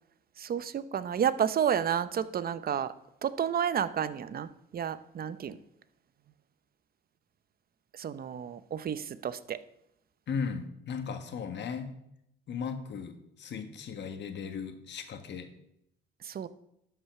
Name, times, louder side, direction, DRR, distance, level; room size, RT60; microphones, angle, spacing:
voice 1, 0.4-2.9 3.2-5.6 7.9-9.6 16.2-16.5, right 8 dB, 50° right, 14 dB, 0.7 m, -31 dB
voice 2, 10.3-11.9 12.5-15.5, left 6 dB, 65° left, 7 dB, 1.5 m, -37 dB
12.0 x 5.7 x 5.9 m, 0.79 s
cardioid pair, 90°, 20 cm